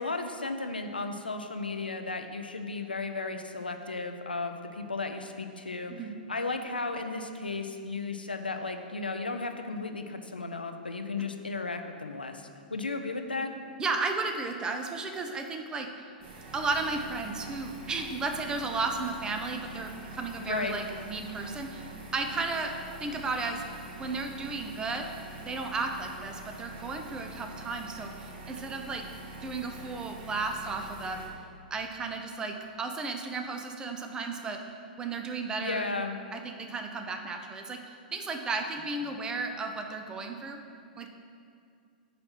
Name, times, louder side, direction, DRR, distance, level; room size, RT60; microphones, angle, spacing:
voice 1, 0.0-5.9 6.3-12.4 12.7-13.5 20.4-20.7 35.6-36.2, left 3 dB, 85° left, 6 dB, 0.5 m, -34 dB
voice 2, 13.8-15.9 16.5-25.1 25.5-28.1 28.5-29.1 29.4-31.2 31.7-34.6 35.0-35.9 36.3-40.6 41.0-41.1, right 3 dB, 15° right, 5 dB, 0.6 m, -34 dB
sound 1, 16.2-31.3, right 1 dB, 40° right, 1.5 m, -45 dB
8.9 x 3.2 x 5.7 m, 2.4 s
figure-of-eight pair, 105°, 5 cm